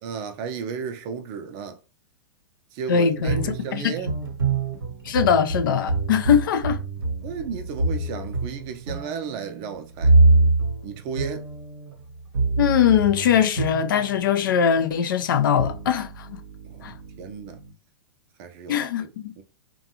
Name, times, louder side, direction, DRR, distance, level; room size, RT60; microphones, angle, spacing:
voice 1, 0.0-1.8 2.7-4.1 7.2-10.1 10.8-11.5 17.2-17.6 18.4-19.1 19.4-19.5, right 6 dB, 35° right, 0.5 m, -34 dB
voice 2, 2.9-3.9 5.1-6.8 12.6-16.4 16.8-16.9 18.7-19.3, left 8 dB, 60° left, 0.5 m, -21 dB
sound 1, 3.2-14.6 15.3-17.7, right 3 dB, 70° right, 0.8 m, -25 dB
2.5 x 2.2 x 2.7 m
figure-of-eight pair, 105°, 12 cm